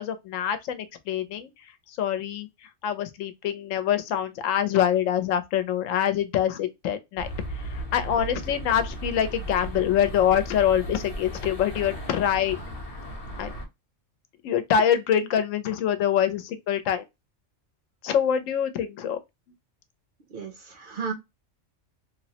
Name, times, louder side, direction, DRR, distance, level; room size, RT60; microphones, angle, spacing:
voice 1, 0.0-1.5 1.9-2.5 2.8-7.3 7.5-12.6 13.4-13.5 14.4-17.0 18.0-19.2, left 9 dB, 85° left, 1.0 m, -25 dB
sound 1, 7.2-13.7, right 1 dB, 35° left, 0.6 m, -36 dB
voice 2, 20.3-21.1, right 5 dB, 55° right, 0.7 m, -33 dB
2.9 x 2.0 x 2.7 m
omnidirectional pair, 1.3 m